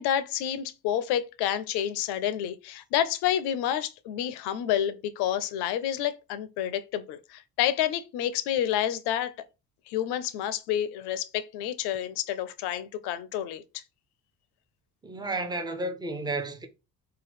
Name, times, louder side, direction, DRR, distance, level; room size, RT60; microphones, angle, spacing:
voice 1, 0.0-9.3 9.9-13.8, left 11 dB, 55° left, 0.5 m, -29 dB
voice 2, 15.0-16.7, right 2 dB, 10° right, 0.5 m, -32 dB
2.7 x 2.2 x 3.4 m
hypercardioid pair, 55°, 47 cm